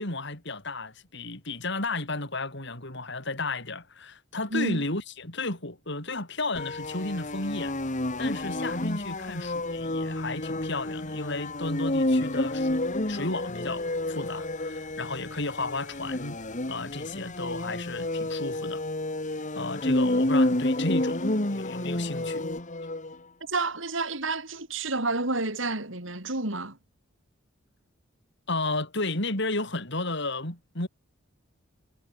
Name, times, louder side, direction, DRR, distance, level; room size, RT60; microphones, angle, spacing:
voice 1, 0.0-7.8 8.2-16.4 16.7-18.8 19.6-22.5 28.5-30.9, left 2 dB, 65° left, 7.5 m, -33 dB
voice 2, 4.5-4.8 23.5-26.8, right 3 dB, 75° right, 7.0 m, -30 dB
sound 1, 6.6-23.2, left 1 dB, 40° left, 2.4 m, -30 dB
head